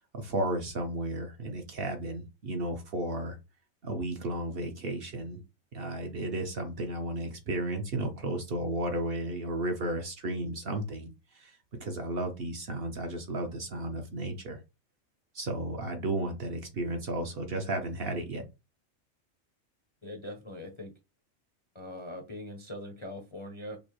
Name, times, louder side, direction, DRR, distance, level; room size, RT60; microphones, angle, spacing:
voice 1, 0.1-3.4 3.8-5.4 5.7-14.6 15.3-18.4, right 1 dB, 55° right, 0.8 m, -33 dB
voice 2, 20.0-20.9 21.7-23.8, left 1 dB, 35° left, 0.5 m, -41 dB
5.2 x 2.0 x 3.0 m
omnidirectional pair, 1.4 m